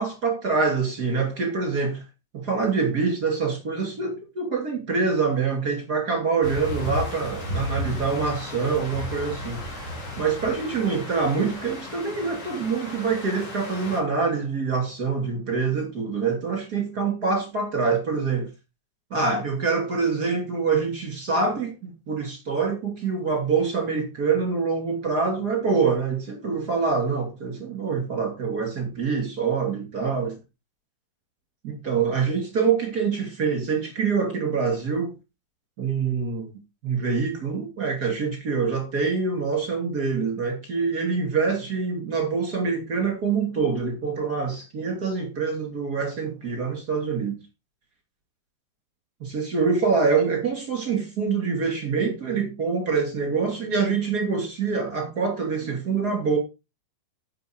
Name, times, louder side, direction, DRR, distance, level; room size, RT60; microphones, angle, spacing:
voice 1, 0.0-2.0 2.3-18.5 19.1-30.3 31.6-35.1 35.8-36.5 36.8-47.4 49.2-56.4, right 5 dB, 30° right, 2.5 m, -25 dB
sound 1, 6.4-14.0, left 1 dB, 55° left, 5.1 m, -34 dB
10.5 x 6.8 x 4.6 m
omnidirectional pair, 4.7 m